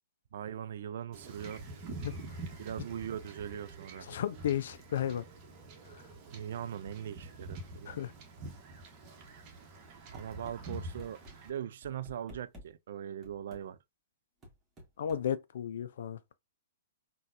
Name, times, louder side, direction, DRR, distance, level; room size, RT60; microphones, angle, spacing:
voice 1, 0.3-1.6 2.6-4.1 6.3-8.0 10.1-13.8, right 9 dB, 60° right, 0.3 m, -40 dB
Wind / Ocean / Boat Water vehicle, 1.1-11.5, right 2 dB, 40° right, 1.0 m, -46 dB
voice 2, 4.1-5.2 5.9-6.0 7.9-8.1 15.0-16.2, left 9 dB, 65° left, 0.3 m, -33 dB
sound 1, 10.1-10.6 11.0-11.3 11.8-12.7 13.2-13.6 14.4-15.2, left 1 dB, 15° right, 1.6 m, -51 dB
3.9 x 2.3 x 2.5 m
hypercardioid pair, 115°, 0 cm